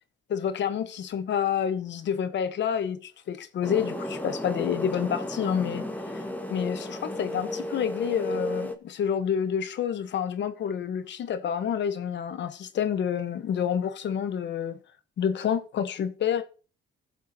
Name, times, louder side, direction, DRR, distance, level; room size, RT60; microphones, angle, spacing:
voice 1, 0.3-5.9 6.1-6.2 6.5-14.8 15.2-16.4, left 8 dB, 65° left, 1.1 m, -28 dB
sound 1, 3.6-8.7, left 1 dB, 10° left, 1.5 m, -33 dB
16.0 x 7.2 x 2.8 m
cardioid pair, 90°, 20 cm